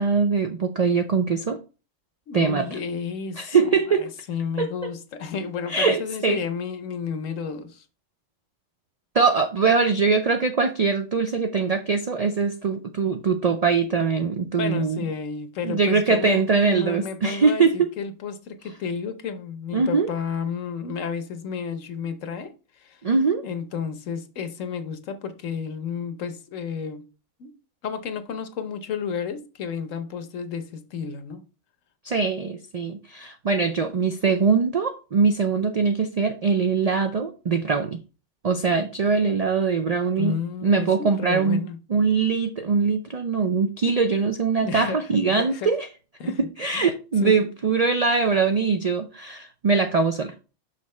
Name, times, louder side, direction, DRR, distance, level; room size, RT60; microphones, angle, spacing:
voice 1, 0.0-1.6 2.3-2.7 3.4-4.1 4.6-4.9 5.7-6.4 9.1-15.0 15.6-17.9 19.7-20.1 23.0-23.5 32.0-38.0 38.4-40.3 40.6-41.6 41.9-45.9 46.4-50.3, right 5 dB, 70° right, 0.3 m, -22 dB
voice 2, 2.3-7.8 14.6-22.5 22.8-23.0 23.4-27.1 27.4-27.5 27.8-31.4 40.2-41.8 44.6-45.7 46.2-46.5 46.7-46.9 47.2-47.5, left 6 dB, 85° left, 1.2 m, -32 dB
6.1 x 5.7 x 3.2 m
omnidirectional pair, 1.3 m